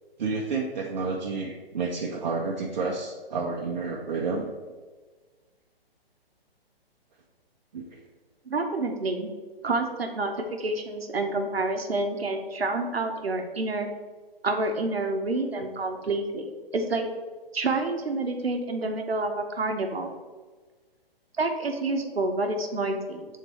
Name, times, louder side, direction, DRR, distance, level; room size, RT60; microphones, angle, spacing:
voice 1, 0.2-4.5 7.7-8.0, right 4 dB, 45° right, -1 dB, 0.7 m, -30 dB
voice 2, 8.5-9.3 9.6-13.9 14.4-17.1 17.5-20.1 21.4-23.3, right 2 dB, 80° right, 4 dB, 0.9 m, -28 dB
6.7 x 3.7 x 4.2 m, 1.4 s
figure-of-eight pair, 130°, 30 cm